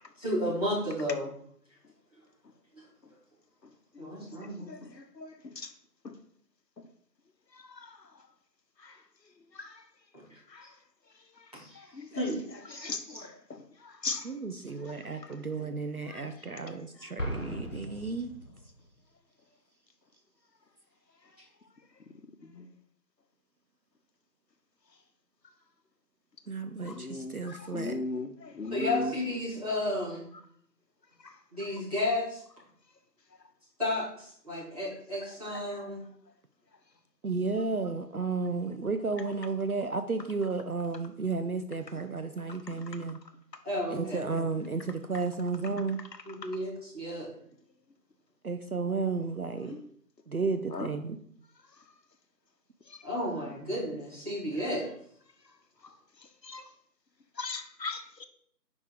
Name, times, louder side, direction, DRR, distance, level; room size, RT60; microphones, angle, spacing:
voice 1, 0.2-1.3 4.0-4.7 11.5-11.8 12.1-12.4 12.7-13.0 28.7-30.3 31.5-32.4 33.8-36.0 43.6-44.2 46.3-47.3 53.0-54.8, left 1 dB, 25° right, -11 dB, 2.6 m, -32 dB
voice 2, 3.9-5.7 6.0-6.1 7.5-8.0 8.8-9.0 9.6-9.7 10.5-10.7 11.4-11.5 11.7-12.2 12.7-14.3 14.7-14.8 15.3-15.4 16.1-16.3 16.5-16.6 22.4-22.7 26.8-29.1 31.2-31.3 35.5-35.6 42.7-42.8 49.7-49.9 50.7-50.9 52.9-53.0 56.4-56.7 57.4-58.2, left 3 dB, 90° left, 8 dB, 0.9 m, -39 dB
voice 3, 14.2-18.3 26.5-28.0 37.2-43.2 43.9-46.0 48.4-49.8 50.3-51.2 53.5-53.7, right 4 dB, 65° right, 9 dB, 0.5 m, -33 dB
Explosion, 17.2-18.9, equal, 50° left, 1.0 m, -37 dB
5.3 x 4.9 x 4.7 m, 0.64 s
figure-of-eight pair, 175°, 49 cm